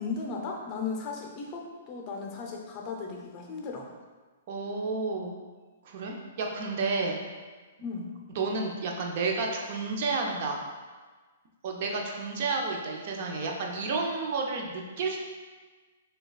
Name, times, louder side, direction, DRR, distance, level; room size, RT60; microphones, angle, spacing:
voice 1, 0.0-3.9 7.8-8.1, left 4 dB, 35° left, 0 dB, 0.6 m, -36 dB
voice 2, 4.5-5.3 5.8-7.2 8.4-10.6 11.6-15.2, right 3 dB, 50° right, 1 dB, 0.6 m, -31 dB
6.0 x 2.3 x 2.3 m, 1.4 s
figure-of-eight pair, 120°, 0 cm